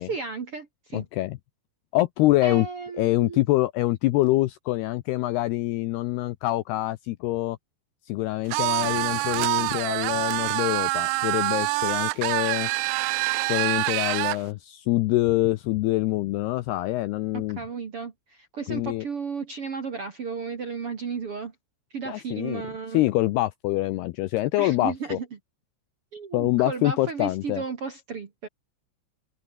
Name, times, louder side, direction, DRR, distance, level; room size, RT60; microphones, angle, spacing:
voice 1, 0.0-1.1 2.4-3.4 17.3-21.5 21.9-23.0 24.6-25.3 26.1-28.5, right 5 dB, 50° right, 1.8 m, -34 dB
voice 2, 0.9-1.4 1.9-2.7 3.0-7.6 8.1-12.7 13.5-17.6 18.7-19.0 22.1-22.6 22.9-25.2 26.3-27.6, left 17 dB, 80° left, 2.4 m, -25 dB
sound 1, 8.5-14.4, right 24 dB, 85° right, 2.5 m, -26 dB
open air
omnidirectional pair, 5.4 m